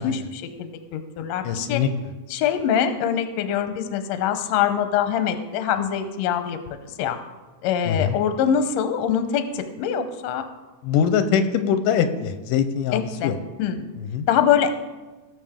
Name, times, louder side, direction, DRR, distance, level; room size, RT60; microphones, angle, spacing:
voice 1, 0.0-1.8 2.3-7.2 7.6-10.4 12.9-13.3 13.6-13.9 14.3-14.7, left 8 dB, 70° left, 9 dB, 1.8 m, -24 dB
voice 2, 1.4-1.9 7.9-8.2 10.8-13.4 14.0-14.3, left 7 dB, 90° left, 9 dB, 2.2 m, -23 dB
18.0 x 7.1 x 3.6 m, 1.2 s
omnidirectional pair, 3.7 m